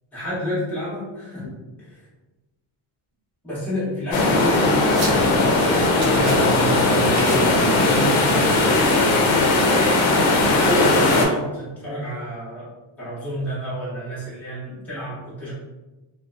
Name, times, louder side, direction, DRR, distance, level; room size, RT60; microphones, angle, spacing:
voice 1, 0.1-1.5 1.8-2.0 3.4-6.4 10.0-12.7 13.0-15.5, equal, 5° left, -11 dB, 0.8 m, -29 dB
sound 1, 4.1-11.3, left 2 dB, 80° left, 0.7 m, -18 dB
sound 2, 4.2-10.5, right 2 dB, 50° right, 0.8 m, -37 dB
voice 2, 6.2-8.4, right 1 dB, 35° left, -8 dB, 0.7 m, -28 dB
2.5 x 2.1 x 2.5 m, 1.1 s
cardioid pair, 175°, 48 cm